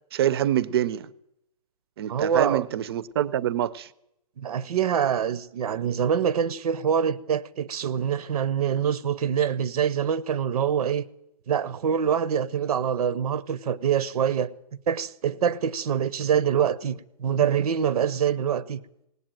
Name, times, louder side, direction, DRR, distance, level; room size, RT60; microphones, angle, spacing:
voice 1, 0.1-1.1 2.0-3.9, right 11 dB, 40° right, 0.5 m, -25 dB
voice 2, 2.1-2.6 4.4-11.1 11.5-14.5 14.9-18.8, right 8 dB, 80° right, 0.7 m, -25 dB
18.0 x 8.4 x 8.9 m
hypercardioid pair, 170°, 19 cm